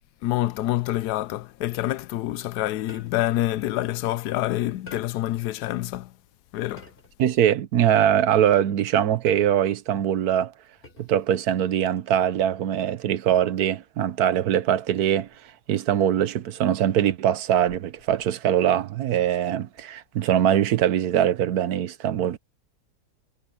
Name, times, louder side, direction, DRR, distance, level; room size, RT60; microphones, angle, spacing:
voice 1, 0.2-6.1 6.5-6.9, left 15 dB, 90° left, 1.1 m, -27 dB
sound 1, 2.9-3.4 4.9-5.4 6.8-7.3 9.3-9.8 10.8-11.3 12.7-13.1, left 2 dB, 35° left, 8.1 m, -48 dB
voice 2, 7.2-10.5 11.0-15.3 15.7-22.4, right 10 dB, 75° right, 1.3 m, -22 dB
omnidirectional pair, 1.7 m